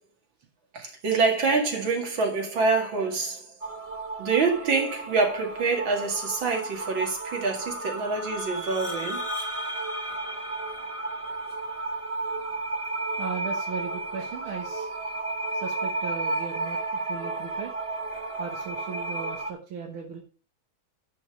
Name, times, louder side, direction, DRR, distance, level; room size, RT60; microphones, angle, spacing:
voice 1, 0.7-3.5 4.2-9.2, right 4 dB, 70° right, 2.9 m, -26 dB
sound 1, 3.6-19.5, right 2 dB, 35° right, 0.5 m, -33 dB
voice 2, 13.2-15.1 15.5-17.7 18.4-20.2, right 5 dB, 90° right, 2.2 m, -37 dB
10.5 x 5.4 x 4.8 m
omnidirectional pair, 2.2 m